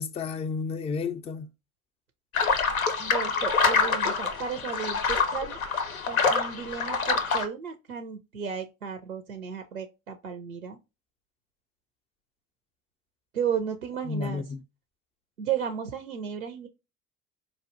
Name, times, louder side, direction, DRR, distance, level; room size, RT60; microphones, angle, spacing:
voice 1, 0.0-1.5 14.0-14.6, left 4 dB, 15° left, 0.3 m, -32 dB
sound 1, 2.3-7.4, left 5 dB, 80° left, 0.6 m, -26 dB
voice 2, 3.0-5.6 6.1-10.8 13.3-14.4 15.4-16.7, right 7 dB, 90° right, 0.5 m, -34 dB
4.3 x 2.4 x 2.4 m
figure-of-eight pair, 60°, 41 cm